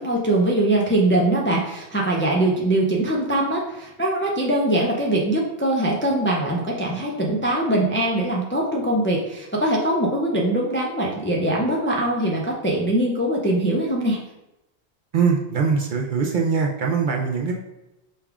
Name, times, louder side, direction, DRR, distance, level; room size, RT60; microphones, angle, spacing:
voice 1, 0.0-14.2, right 1 dB, 20° left, -2 dB, 0.4 m, -22 dB
voice 2, 15.1-17.5, right 5 dB, 60° right, 0 dB, 0.6 m, -22 dB
5.3 x 2.4 x 3.4 m, 0.94 s
omnidirectional pair, 1.1 m